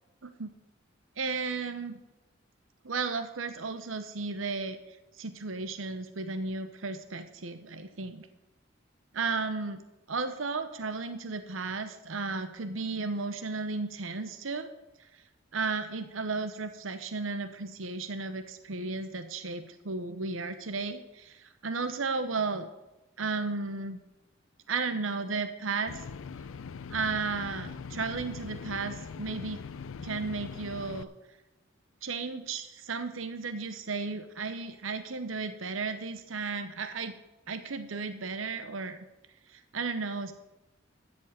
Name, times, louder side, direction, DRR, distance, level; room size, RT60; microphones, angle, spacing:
voice 1, 0.2-0.5 1.2-2.0 2.8-4.8 5.2-8.3 9.1-9.8 10.1-14.7 15.5-22.7 23.2-24.0 24.7-26.0 26.9-29.6 30.0-31.1 32.0-37.1 37.5-39.0 39.5-40.3, right 4 dB, 80° right, 9 dB, 0.9 m, -34 dB
sound 1, 25.9-31.0, left 5 dB, 85° left, 0.4 m, -41 dB
13.5 x 5.3 x 8.3 m, 0.99 s
head